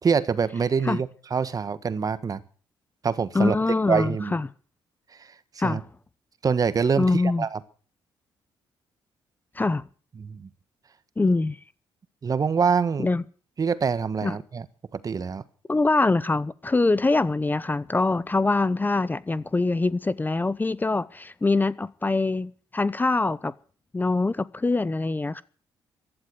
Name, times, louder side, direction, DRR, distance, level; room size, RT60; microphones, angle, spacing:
voice 1, 0.0-2.4 3.0-3.5 3.9-4.4 5.2-5.3 5.6-5.8 6.4-7.6 10.2-10.5 12.2-13.1 13.6-14.6 14.9-15.4, right 6 dB, 40° right, 1.4 m, -25 dB
voice 2, 3.3-4.5 5.6-5.9 7.0-7.4 9.5-9.8 11.2-11.6 13.0-13.2 14.2-14.4 15.7-23.5 23.9-25.4, left 3 dB, 20° left, 0.9 m, -24 dB
15.0 x 11.5 x 7.9 m
cardioid pair, 80°, 9 cm